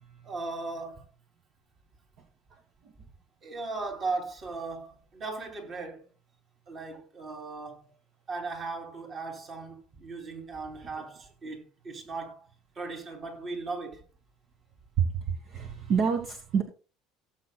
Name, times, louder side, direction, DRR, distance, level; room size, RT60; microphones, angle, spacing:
voice 1, 0.2-1.0 3.4-6.1 6.7-7.9 8.3-12.4 12.8-14.0, right 3 dB, 35° right, 2.8 m, -37 dB
voice 2, 15.5-16.6, right 7 dB, 50° right, 1.5 m, -26 dB
17.5 x 7.6 x 2.2 m
cardioid pair, 125°, 0 cm